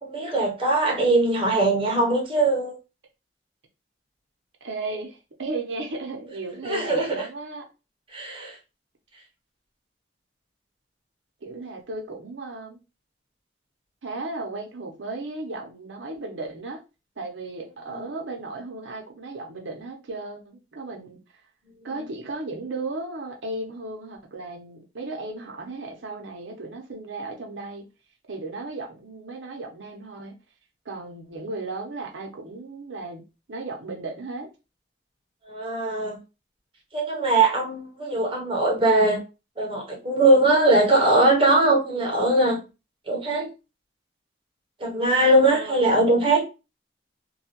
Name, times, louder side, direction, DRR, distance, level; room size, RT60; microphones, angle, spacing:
voice 1, 0.0-2.7 6.6-7.2 8.1-8.6 17.9-18.0 35.4-36.2 36.9-39.2 39.6-42.6 43.1-43.5 44.8-46.5, right 2 dB, 30° right, 0.8 m, -21 dB
voice 2, 4.6-7.7 11.4-12.8 14.0-16.8 17.2-21.2 21.8-27.8 28.3-30.3 30.8-34.5 45.4-45.9, right 2 dB, 90° right, 0.8 m, -35 dB
2.6 x 2.3 x 2.9 m
head